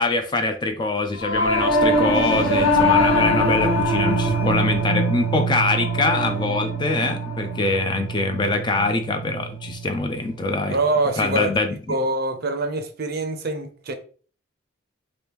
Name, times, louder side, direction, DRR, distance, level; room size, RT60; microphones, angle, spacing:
voice 1, 0.0-10.8 11.2-11.8, left 3 dB, 25° left, 0.3 m, -24 dB
Singing / Musical instrument, 1.2-10.7, equal, 85° left, 0.8 m, -23 dB
voice 2, 10.7-11.5 11.9-13.9, right 2 dB, 55° right, 0.5 m, -24 dB
2.9 x 2.6 x 3.3 m
head